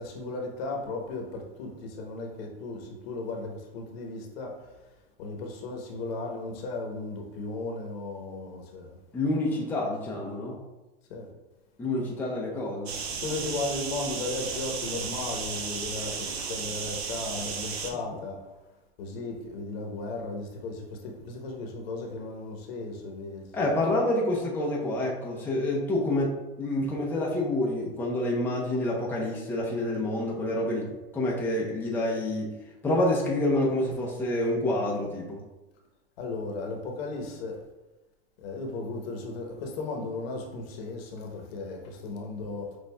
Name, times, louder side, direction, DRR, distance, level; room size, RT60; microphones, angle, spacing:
voice 1, 0.0-4.7 5.2-9.0 11.1-11.3 13.1-18.4 19.0-23.7 36.2-37.6 38.4-42.8, left 3 dB, 65° left, 1 dB, 1.0 m, -36 dB
voice 2, 9.1-10.6 11.8-12.9 23.5-30.9 31.1-32.5 32.8-35.4, left 1 dB, 5° left, -3 dB, 0.6 m, -28 dB
sound 1, 12.9-17.9, right 5 dB, 75° right, 0.8 m, -34 dB
6.3 x 2.5 x 2.2 m, 1.1 s
hypercardioid pair, 120°, 32 cm